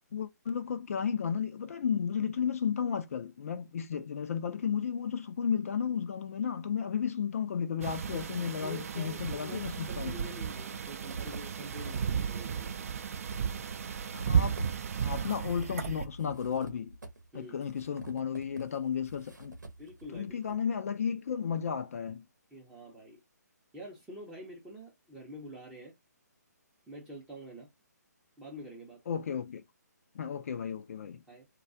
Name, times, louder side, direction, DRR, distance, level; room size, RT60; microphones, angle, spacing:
voice 1, 0.1-10.1 14.1-14.7 15.0-16.9 17.3-19.6 20.1-22.2 29.1-29.6 30.1-31.2, left 7 dB, 55° left, 0.4 m, -33 dB
sound 1, 7.8-16.1, right 7 dB, 50° right, 0.4 m, -34 dB
voice 2, 8.1-12.9 17.3-17.6 19.8-20.6 22.5-23.2 23.7-25.9 26.9-27.7 28.4-29.0 31.3-31.5, right 1 dB, 5° right, 0.6 m, -47 dB
sound 2, 9.4-12.1 12.4-20.5, right 2 dB, 85° right, 0.8 m, -48 dB
2.2 x 2.2 x 2.5 m
figure-of-eight pair, 145°, 10 cm